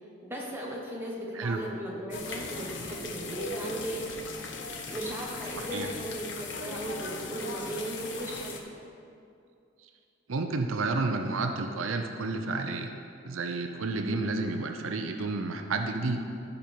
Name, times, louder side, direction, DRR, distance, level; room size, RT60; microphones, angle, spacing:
voice 1, 0.2-4.1 4.5-8.6, right 1 dB, 10° right, -3 dB, 1.3 m, -37 dB
sound 1, 2.1-8.6, left 3 dB, 60° left, 0.9 m, -38 dB
voice 2, 5.6-5.9 10.3-12.9 13.2-16.2, right 3 dB, 80° right, 5 dB, 0.6 m, -30 dB
14.0 x 5.3 x 4.5 m, 2.5 s
head